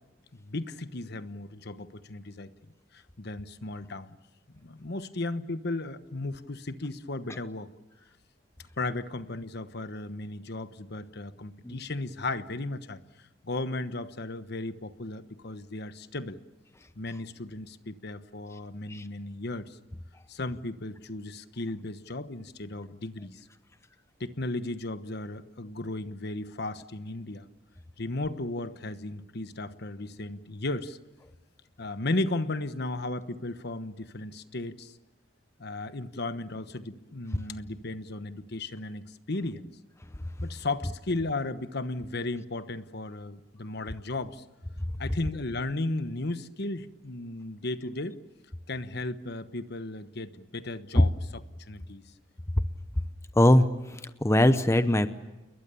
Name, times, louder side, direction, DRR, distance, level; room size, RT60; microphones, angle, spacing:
voice 1, 0.3-2.5 2.9-4.1 4.6-7.7 8.8-13.0 13.4-16.4 17.0-19.8 20.3-23.5 24.2-27.4 28.0-31.0 31.8-34.9 35.6-39.7 40.4-44.4 45.0-48.2 48.7-52.0, left 2 dB, 55° left, 11 dB, 1.2 m, -35 dB
voice 2, 53.4-53.7 53.9-55.1, left 1 dB, 15° left, 10 dB, 0.9 m, -21 dB
29.5 x 21.5 x 7.0 m, 1.0 s
head